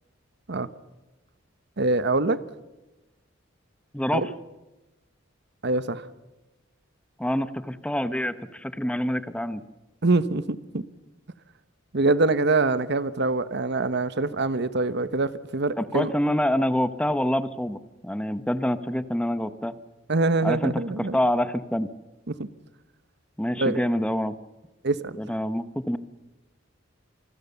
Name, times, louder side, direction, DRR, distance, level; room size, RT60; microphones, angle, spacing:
voice 1, 1.8-2.4 4.1-4.3 5.6-6.1 10.0-10.8 11.9-16.1 20.1-21.2 22.3-22.5 23.6-23.8 24.8-25.2, right 3 dB, 60° right, 14 dB, 1.1 m, -24 dB
voice 2, 3.9-4.3 7.2-9.6 15.8-19.8 20.4-21.9 23.4-24.3 25.2-26.0, left 1 dB, 5° left, 12 dB, 0.9 m, -26 dB
27.5 x 20.5 x 6.9 m, 1.0 s
head